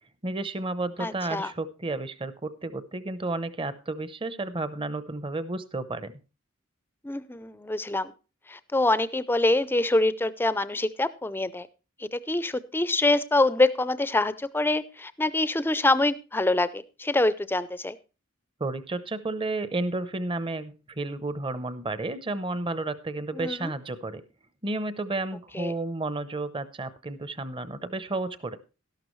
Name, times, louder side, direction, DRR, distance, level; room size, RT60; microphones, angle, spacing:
voice 1, 0.2-6.1 18.6-24.2 24.6-28.6, right 2 dB, 25° right, 13 dB, 0.7 m, -32 dB
voice 2, 1.0-1.5 7.0-8.1 8.5-11.7 12.0-18.0 23.3-23.7 25.5-25.7, left 2 dB, 10° left, 15 dB, 0.5 m, -25 dB
12.5 x 11.5 x 3.1 m, 0.31 s
head